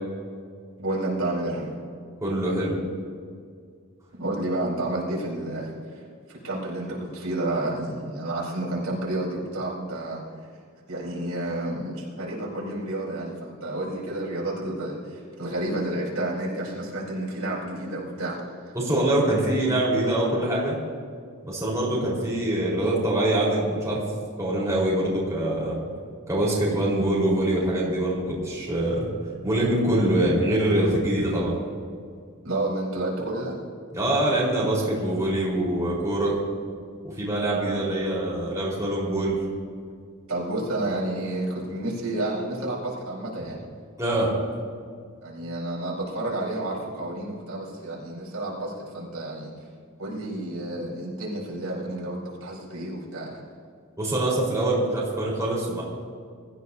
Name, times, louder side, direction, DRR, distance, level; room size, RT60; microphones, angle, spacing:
voice 1, 0.8-1.8 4.1-6.0 6.3-10.2 10.9-18.7 32.4-33.6 37.6-37.8 40.3-43.6 45.2-49.5 50.0-53.4, right 1 dB, 75° right, -5 dB, 4.7 m, -30 dB
voice 2, 2.2-2.7 18.7-20.8 21.5-24.0 24.4-25.8 26.3-29.1 29.4-31.5 33.9-36.4 37.2-39.4 44.0-44.3 54.0-55.8, right 1 dB, 15° right, -6 dB, 4.5 m, -24 dB
23.5 x 14.5 x 2.8 m, 2.1 s
head